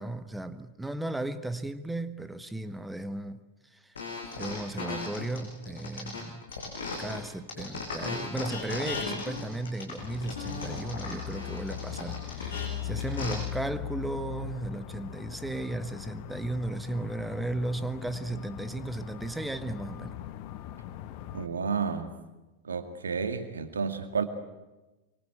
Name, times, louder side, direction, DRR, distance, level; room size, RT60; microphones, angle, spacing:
voice 1, 0.0-3.4 3.7-3.9 4.4-6.4 7.0-20.2, right 2 dB, 5° right, 11 dB, 1.4 m, -35 dB
sound 1, 3.9-7.2 7.5-13.3, left 4 dB, 70° left, 6.8 m, -37 dB
sound 2, 10.0-21.5, left 11 dB, 45° left, 1.2 m, -40 dB
voice 2, 21.3-22.1 22.6-24.2, right 5 dB, 70° right, 8 dB, 2.2 m, -31 dB
25.5 x 24.0 x 8.2 m, 1.1 s
figure-of-eight pair, 90°, 0 cm